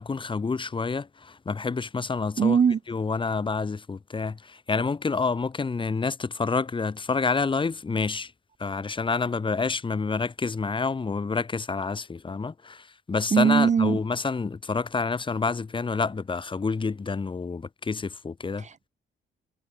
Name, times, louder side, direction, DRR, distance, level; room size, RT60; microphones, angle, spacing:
voice 1, 0.0-2.6 2.9-8.3 8.6-18.6, left 4 dB, 25° left, 1.2 m, -28 dB
voice 2, 2.4-2.8 13.3-14.0 18.6-18.9, right 6 dB, 35° right, 0.8 m, -21 dB
cardioid pair, 90°, 20 cm